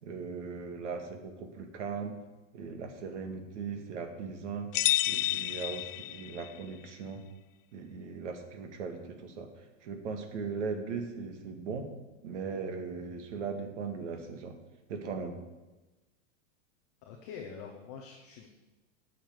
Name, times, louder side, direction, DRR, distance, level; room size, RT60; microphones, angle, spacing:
voice 1, 0.0-2.2 2.5-4.7 5.1-7.2 7.7-9.5 9.8-11.9 12.2-14.6 14.9-15.4, right 5 dB, 70° right, 5 dB, 2.0 m, -38 dB
sound 1, 4.7-6.6, left 15 dB, 85° left, 0.6 m, -30 dB
voice 2, 17.0-18.5, left 6 dB, 15° left, 1 dB, 0.3 m, -45 dB
9.1 x 6.5 x 8.5 m, 1.1 s
supercardioid pair, 170°, 36 cm